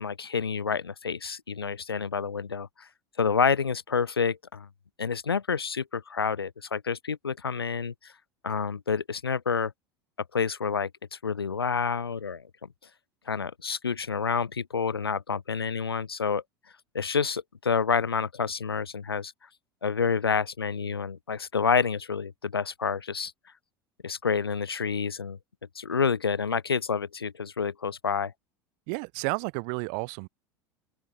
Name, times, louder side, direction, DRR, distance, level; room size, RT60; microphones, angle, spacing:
voice 1, 0.0-2.9 3.2-4.7 5.0-8.1 8.4-9.7 10.3-12.5 13.3-16.4 16.9-19.3 19.8-23.3 24.0-25.4 25.8-28.3, left 5 dB, 90° left, 4.1 m, -28 dB
voice 2, 28.9-30.3, right 40 dB or more, 60° right, 5.2 m, -31 dB
open air
hypercardioid pair, 80°, 12 cm